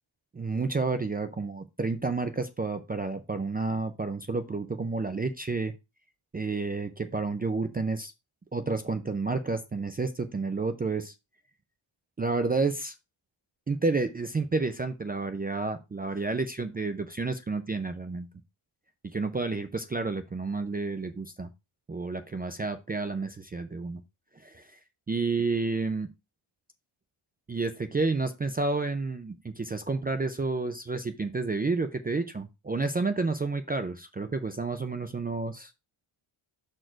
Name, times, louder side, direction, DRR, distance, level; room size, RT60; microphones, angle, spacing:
voice 1, 0.3-5.7 6.3-8.1 8.5-11.1 12.2-12.9 13.7-18.3 19.0-21.5 21.9-24.0 24.4-24.7 25.1-26.1 27.5-35.7, right 3 dB, 20° right, 8 dB, 0.4 m, -30 dB
6.2 x 4.4 x 4.4 m, 0.25 s
wide cardioid pair, 170°, 49 cm